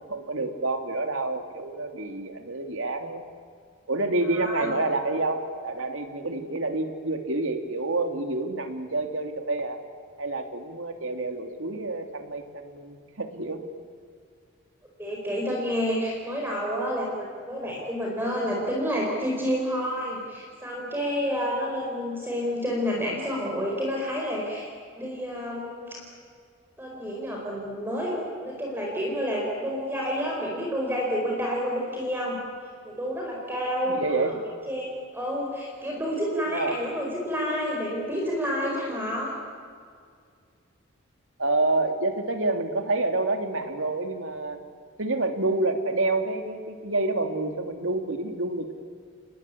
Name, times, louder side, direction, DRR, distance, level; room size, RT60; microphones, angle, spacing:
voice 1, 0.0-3.2 3.9-9.8 10.2-13.6 33.9-34.4 36.4-36.8 41.4-44.6 45.0-48.7, right 2 dB, 75° right, 6 dB, 2.6 m, -28 dB
voice 2, 4.3-4.7 15.0-24.7 25.0-26.0 26.8-32.4 32.8-34.3 34.7-39.3, equal, 10° right, -2 dB, 4.5 m, -29 dB
29.5 x 20.5 x 8.5 m, 2.2 s
head